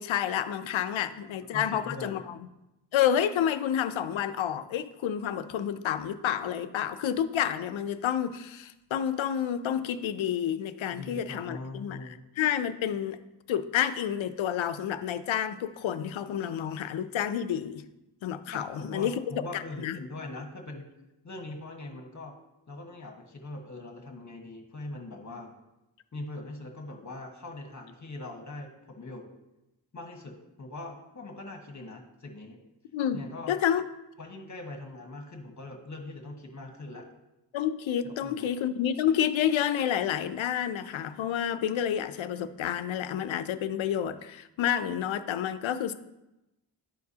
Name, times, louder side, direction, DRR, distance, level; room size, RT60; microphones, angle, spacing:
voice 1, 0.0-2.4 2.9-13.2 13.5-17.8 18.2-19.1 19.5-20.0 32.9-33.8 37.5-45.9, left 9 dB, 85° left, 11 dB, 0.5 m, -29 dB
voice 2, 1.4-2.2 10.9-12.2 18.5-20.9 21.2-22.3 22.7-25.5 26.1-29.3 29.9-32.6 33.1-33.5 34.2-37.0 38.0-38.5, left 2 dB, 40° left, 2 dB, 1.4 m, -42 dB
11.5 x 4.6 x 2.8 m, 0.95 s
cardioid pair, 60°, 46 cm